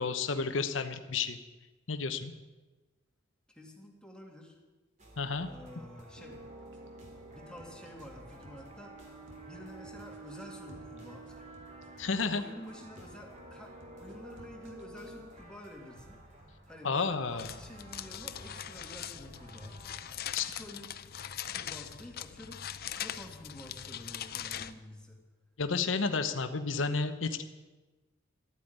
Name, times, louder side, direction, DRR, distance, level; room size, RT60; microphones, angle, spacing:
voice 1, 0.0-1.4 1.9-2.3 5.2-5.5 12.0-12.4 16.8-17.5 20.3-20.5 25.6-27.4, left 4 dB, 75° left, 9 dB, 0.9 m, -31 dB
voice 2, 3.5-4.6 5.5-6.4 7.3-9.0 9.4-11.6 11.8-16.2 16.7-19.8 20.4-20.9 21.5-22.6 22.9-25.2, left 1 dB, 5° left, 0 dB, 2.3 m, -49 dB
sound 1, 5.0-20.1, right 1 dB, 40° right, 3.1 m, -54 dB
sound 2, 6.2-15.2, right 2 dB, 70° right, 2.1 m, -51 dB
sound 3, 17.4-24.7, left 10 dB, 55° left, 0.6 m, -41 dB
13.5 x 8.9 x 9.4 m, 1.2 s
head